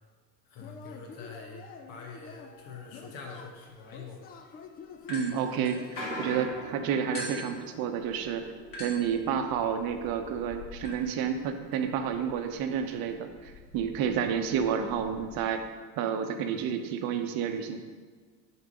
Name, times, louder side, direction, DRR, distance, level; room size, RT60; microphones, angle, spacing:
voice 1, 0.5-4.2, left 4 dB, 55° left, 2 dB, 1.2 m, -45 dB
Yell / Cheering, 0.6-6.7, left 6 dB, 20° left, 0.3 m, -48 dB
sound 1, 2.5-2.6 3.0-3.1 3.7-3.9 4.6-4.8 5.7-12.1 12.7-12.9 13.1-13.2 13.7-13.8 14.4-14.5, equal, 85° left, 1.3 m, -43 dB
sound 2, 5.0-6.5 7.1-15.4, left 2 dB, 40° left, 1.7 m, -46 dB
voice 2, 5.1-5.8 6.2-8.4 8.8-15.6 16.0-17.8, right 7 dB, 45° right, 6 dB, 0.8 m, -30 dB
6.7 x 4.5 x 5.1 m, 1.5 s
figure-of-eight pair, 65°, 50 cm